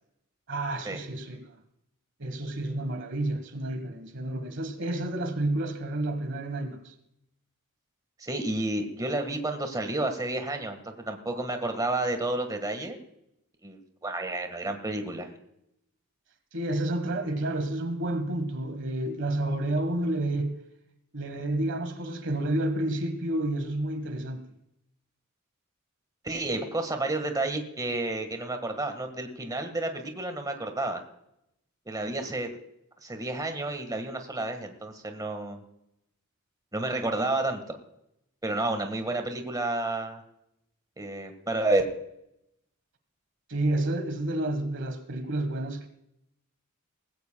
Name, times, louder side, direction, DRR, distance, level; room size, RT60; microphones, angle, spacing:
voice 1, 0.5-1.5 2.2-6.9 16.5-20.5 21.1-24.4 43.5-45.9, right 1 dB, 55° right, 1.4 m, -30 dB
voice 2, 8.2-10.8 11.0-13.0 13.6-15.3 26.2-31.0 31.8-32.5 33.0-35.6 36.7-37.8 38.4-40.2 41.0-41.8, right 2 dB, 15° right, 1.6 m, -30 dB
19.5 x 16.0 x 2.3 m
head